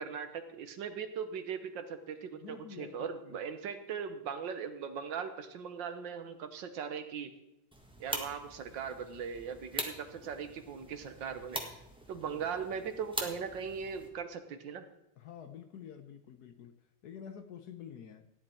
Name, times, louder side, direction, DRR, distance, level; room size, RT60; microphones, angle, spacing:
voice 1, 0.0-7.3 8.0-11.6 12.1-14.9, right 6 dB, 75° right, 8 dB, 1.7 m, -39 dB
voice 2, 2.3-3.4 12.2-12.5 15.2-16.8 17.0-18.3, left 8 dB, 65° left, 9 dB, 1.2 m, -48 dB
sound 1, 7.7-14.1, equal, 5° right, 1.3 m, -43 dB
14.5 x 10.0 x 4.5 m, 0.86 s
omnidirectional pair, 2.1 m